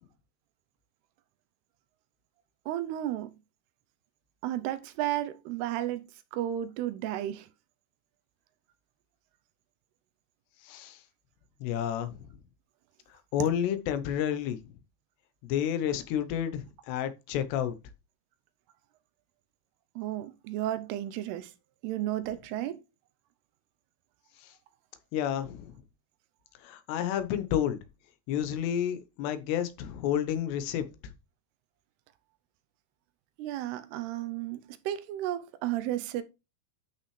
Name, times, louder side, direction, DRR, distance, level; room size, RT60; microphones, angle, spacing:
voice 1, 2.7-3.4 4.4-7.5 20.0-21.5 21.8-22.8 33.4-36.2, right 13 dB, 80° right, 2.7 m, -33 dB
voice 2, 10.6-11.0 11.6-12.2 13.3-14.6 15.4-17.7 24.4-24.5 25.1-25.8 26.6-27.8 28.3-30.8, left 10 dB, 90° left, 3.1 m, -30 dB
12.0 x 5.5 x 3.2 m
omnidirectional pair, 4.7 m